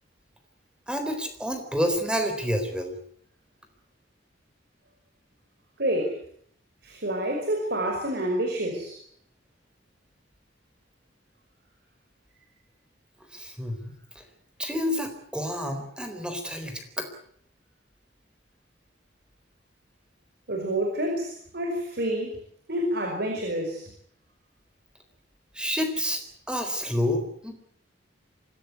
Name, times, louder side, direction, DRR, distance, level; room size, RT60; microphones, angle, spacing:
voice 1, 0.9-2.9 13.3-14.2 14.6-17.1 25.5-26.2 26.5-27.5, equal, 5° right, 7 dB, 4.1 m, -29 dB
voice 2, 5.8-6.2 6.8-9.0 20.5-22.4 22.7-23.9, right 1 dB, 60° right, 3 dB, 5.4 m, -28 dB
24.5 x 17.0 x 9.5 m, 0.65 s
head